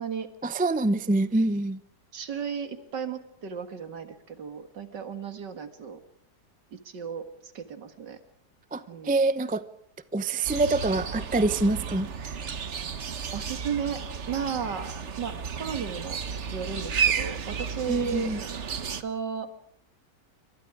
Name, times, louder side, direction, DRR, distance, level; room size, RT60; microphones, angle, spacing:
voice 1, 0.4-1.8 8.7-9.6 10.1-12.4 17.9-18.4, right 2 dB, 15° right, 13 dB, 0.3 m, -26 dB
voice 2, 2.1-6.0 6.7-8.2 8.9-9.1 13.3-14.0 14.3-14.9 15.2-16.2 16.5-18.3 19.0-19.5, right 7 dB, 75° right, 8 dB, 2.5 m, -34 dB
sound 1, 10.4-19.0, right 6 dB, 45° right, 1.2 m, -32 dB
28.5 x 25.0 x 4.9 m, 0.66 s
omnidirectional pair, 1.9 m